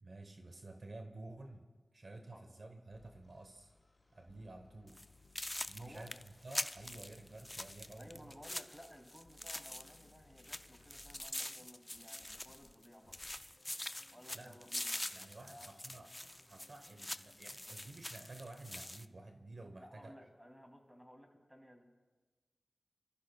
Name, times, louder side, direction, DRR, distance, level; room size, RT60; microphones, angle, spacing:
voice 1, 0.0-1.7 1.9-3.7 4.1-5.0 5.7-6.2 6.4-8.3 14.3-14.5 15.1-16.1 16.4-20.1, right 2 dB, 55° right, 5 dB, 1.0 m, -51 dB
sound 1, 2.9-12.7 13.0-18.1, left 2 dB, 35° left, 4.2 m, -66 dB
sound 2, 4.9-5.1 5.4-10.1 10.4-12.9 13.1-19.1, left 1 dB, 15° left, 0.4 m, -44 dB
voice 2, 8.0-13.2 14.1-14.9 15.5-15.7 19.8-21.8, equal, 5° right, 2 dB, 2.7 m, -57 dB
29.0 x 15.0 x 2.3 m, 1.3 s
wide cardioid pair, 60°, 0 cm